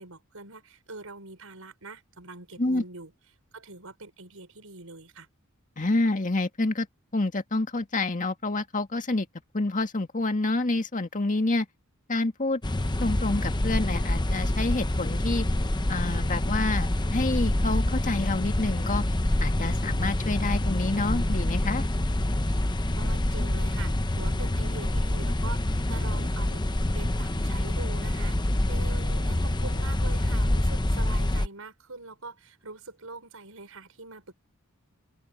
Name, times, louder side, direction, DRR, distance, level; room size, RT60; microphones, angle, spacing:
voice 1, 0.0-3.1 3.5-5.3 23.0-26.6 26.9-34.3, right 3 dB, 80° right, 6.1 m, -43 dB
voice 2, 5.8-6.9 7.1-9.3 9.5-11.7 12.1-12.6 13.0-15.5 15.9-19.0 19.4-21.8, left 2 dB, 40° left, 1.9 m, -28 dB
sound 1, 12.6-31.5, left 1 dB, 20° left, 0.8 m, -26 dB
open air
head